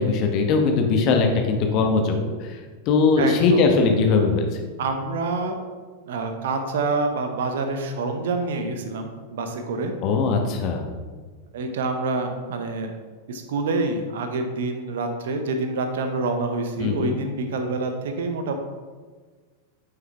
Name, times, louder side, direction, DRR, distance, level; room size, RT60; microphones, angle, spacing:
voice 1, 0.0-2.6 2.9-4.4 10.0-10.9 16.8-17.2, left 4 dB, 40° left, 3 dB, 1.1 m, -20 dB
voice 2, 3.2-3.6 4.8-5.7 6.1-9.9 11.5-13.0 13.3-18.5, right 3 dB, 60° right, 6 dB, 0.8 m, -27 dB
9.2 x 5.6 x 3.4 m, 1.4 s
figure-of-eight pair, 90°, 0 cm